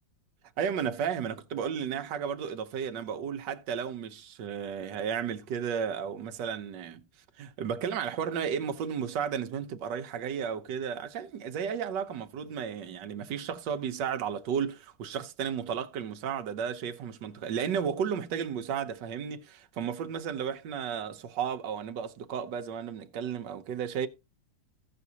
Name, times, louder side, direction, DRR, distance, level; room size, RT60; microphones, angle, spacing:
voice 1, 0.6-7.0 7.4-24.1, right 7 dB, 70° right, 1.4 m, -33 dB
16.0 x 6.0 x 2.7 m
omnidirectional pair, 2.1 m